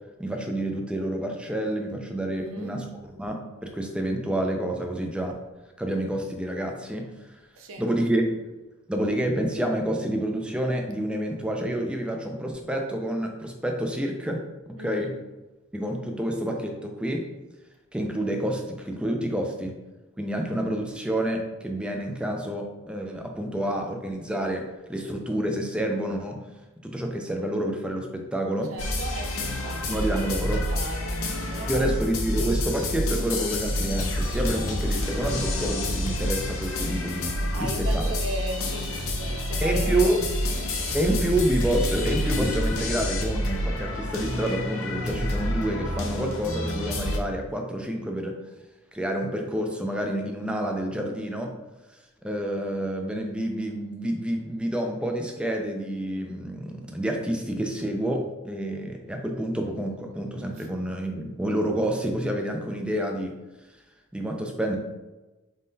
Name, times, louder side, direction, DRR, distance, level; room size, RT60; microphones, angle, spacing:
voice 1, 0.2-2.9 3.2-5.4 5.8-7.0 7.8-8.4 8.9-14.4 14.7-15.1 15.7-17.2 17.9-19.7 20.2-24.6 24.9-26.4 26.9-28.7 29.9-30.6 31.6-38.2 39.6-40.2 40.9-48.3 48.9-51.5 52.2-63.3 64.1-64.8, right 1 dB, 5° right, 2 dB, 0.4 m, -28 dB
voice 2, 2.3-2.8 7.5-7.9 14.8-15.2 28.7-31.9 37.5-40.3 60.6-60.7, right 1 dB, 70° right, 3 dB, 0.5 m, -37 dB
sound 1, 28.8-47.2, left 1 dB, 80° left, 0.7 m, -28 dB
4.2 x 3.7 x 2.6 m, 1.1 s
head